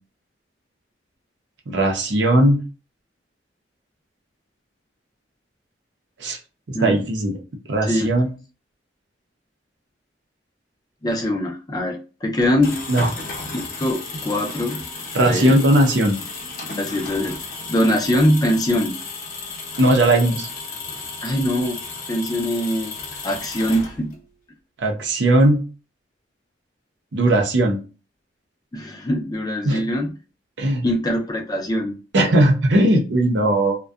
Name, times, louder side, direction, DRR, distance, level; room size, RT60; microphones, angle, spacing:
voice 1, 1.7-2.6 6.2-6.4 6.7-7.4 7.7-8.3 12.9-13.1 15.1-16.2 19.8-20.5 24.8-25.6 27.1-27.8 29.6-29.8 30.6-30.9 32.1-33.8, right 1 dB, 80° right, 1 dB, 0.6 m, -18 dB
voice 2, 7.8-8.1 11.0-12.8 13.5-14.8 15.2-15.6 16.8-17.3 17.7-19.0 21.2-21.8 22.1-22.9 23.2-24.1 28.7-30.1 30.8-32.0, equal, 20° left, 1 dB, 0.4 m, -22 dB
sound 1, 12.4-24.2, left 3 dB, 50° left, 0.7 m, -34 dB
2.6 x 2.2 x 2.3 m, 0.34 s
head